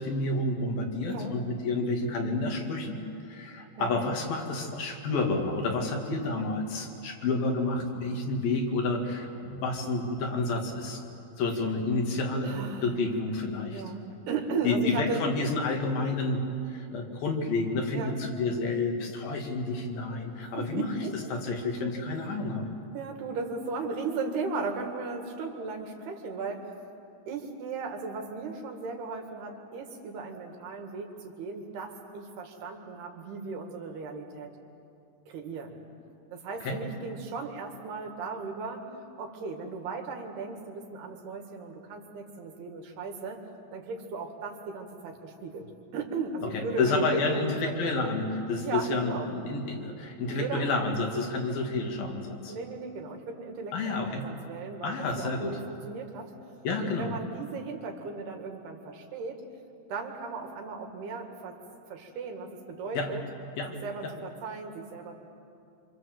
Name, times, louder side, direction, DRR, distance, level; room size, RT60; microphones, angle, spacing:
voice 1, 0.0-3.0 3.3-11.0 11.4-13.8 14.6-20.9 21.3-22.7 36.6-36.8 46.5-52.5 53.7-54.2 54.8-55.6 56.6-57.1 62.9-63.1 63.6-63.7 64.0-64.1, left 3 dB, 70° left, 2 dB, 4.0 m, -30 dB
voice 2, 12.4-13.0 13.7-15.2 17.9-18.2 20.4-21.2 22.9-26.7 27.3-34.5 35.3-35.8 36.3-38.9 39.2-43.4 43.7-48.0 48.6-49.3 50.3-50.8 52.5-56.3 56.9-59.4 59.9-61.6 61.9-63.2 63.8-65.1, right 4 dB, 90° right, 3 dB, 4.2 m, -36 dB
26.5 x 26.0 x 7.8 m, 2.7 s
omnidirectional pair, 4.4 m